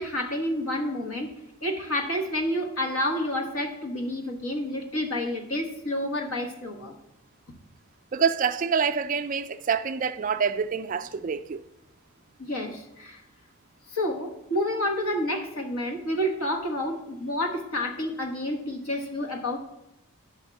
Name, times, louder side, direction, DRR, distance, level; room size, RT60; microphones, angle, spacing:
voice 1, 0.0-1.3 1.6-6.9 12.4-13.2 13.9-19.6, left 1 dB, 80° left, 1.3 m, -29 dB
voice 2, 8.1-11.6, right 6 dB, 35° right, 0.3 m, -26 dB
10.5 x 3.6 x 6.9 m
head